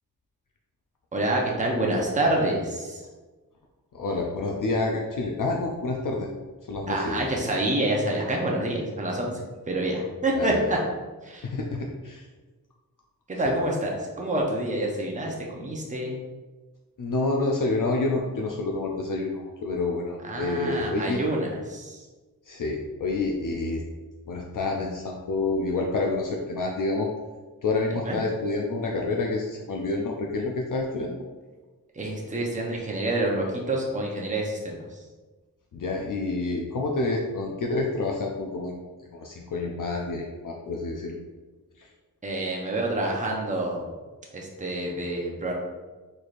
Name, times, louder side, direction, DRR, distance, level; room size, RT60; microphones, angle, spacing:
voice 1, 1.1-3.0 6.9-10.8 11.2-11.5 13.3-16.2 20.2-22.0 28.0-28.2 31.9-35.0 42.2-43.8 44.3-45.5, right 1 dB, 20° right, -1 dB, 0.6 m, -27 dB
voice 2, 3.9-6.3 6.6-7.3 10.4-10.6 11.4-12.3 13.4-13.5 17.0-21.2 22.5-23.8 24.3-27.1 27.6-31.1 35.7-38.8 39.1-41.2 41.8-41.9, left 3 dB, 60° left, -1 dB, 0.5 m, -28 dB
4.2 x 3.2 x 2.5 m, 1.3 s
wide cardioid pair, 105°, 37 cm